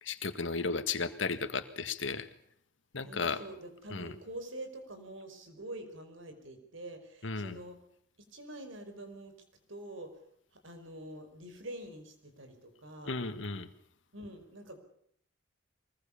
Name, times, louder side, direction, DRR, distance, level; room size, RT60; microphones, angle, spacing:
voice 1, 0.0-2.3 2.9-3.4 3.9-4.1 7.2-7.6 13.0-13.7, left 4 dB, 75° left, 9 dB, 1.8 m, -34 dB
voice 2, 3.0-7.8 8.2-9.4 9.7-10.2 10.5-13.2 14.1-14.8, right 1 dB, 85° right, 8 dB, 5.0 m, -46 dB
23.0 x 21.0 x 7.1 m, 0.69 s
head